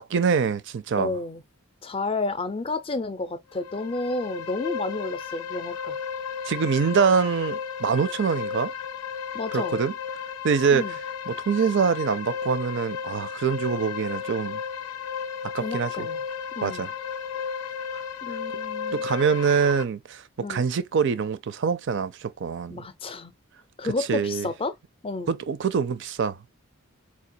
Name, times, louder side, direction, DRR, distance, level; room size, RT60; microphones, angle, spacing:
voice 1, 0.0-1.1 6.5-8.7 9.5-9.9 10.4-10.9 11.3-14.6 15.5-16.1 16.6-16.9 18.9-22.8 24.1-24.5 25.3-26.4, right 6 dB, 55° right, 0.4 m, -24 dB
voice 2, 0.9-1.4 1.8-6.0 9.3-9.8 10.7-11.0 15.6-16.2 16.6-16.9 18.2-19.0 20.4-20.7 22.7-23.3 23.8-24.8 25.0-25.4, left 3 dB, 25° left, 0.4 m, -31 dB
sound 1, 3.5-19.8, left 7 dB, 90° left, 0.4 m, -34 dB
4.5 x 2.3 x 2.6 m
head